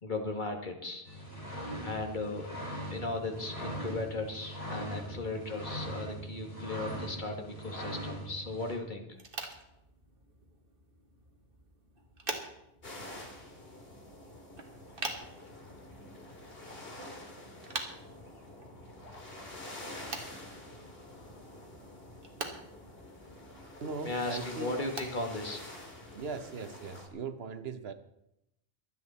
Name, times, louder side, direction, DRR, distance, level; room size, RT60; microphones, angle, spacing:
voice 1, 0.0-1.3 1.8-2.5 2.9-9.2 24.0-25.7, left 2 dB, 50° left, 1.9 m, -37 dB
sound 1, 1.1-8.8, right 1 dB, 85° left, 4.7 m, -40 dB
sound 2, 9.1-26.4, right 3 dB, 60° right, 1.9 m, -46 dB
sound 3, 12.8-27.1, left 1 dB, 70° left, 2.6 m, -48 dB
voice 2, 23.8-24.8 26.1-27.9, right 4 dB, 75° right, 1.2 m, -39 dB
23.5 x 8.4 x 4.2 m
omnidirectional pair, 1.0 m